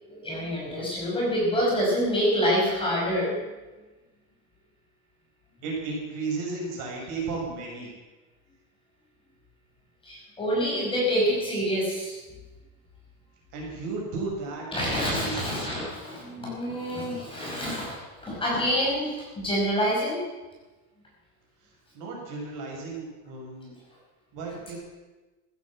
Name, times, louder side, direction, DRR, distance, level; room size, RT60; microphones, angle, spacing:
voice 1, 0.1-3.4 10.0-12.2 14.7-20.2, equal, 10° left, -5 dB, 5.9 m, -27 dB
voice 2, 5.6-7.9 13.5-15.6 21.6-23.7 24.3-24.8, right 3 dB, 45° right, -2 dB, 6.4 m, -34 dB
15.5 x 11.0 x 7.6 m, 1.2 s
supercardioid pair, 160°, 41 cm